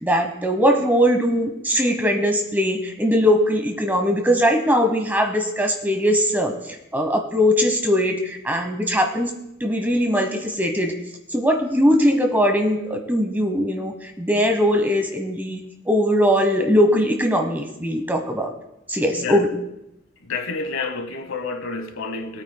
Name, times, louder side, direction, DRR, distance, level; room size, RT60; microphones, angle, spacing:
voice 1, 0.0-11.0 11.3-18.5 18.9-19.5, equal, 10° right, 1.0 m, -20 dB
voice 2, 19.2-19.5 20.2-22.4, left 4 dB, 90° left, 1.0 m, -29 dB
20.0 x 8.9 x 2.2 m
head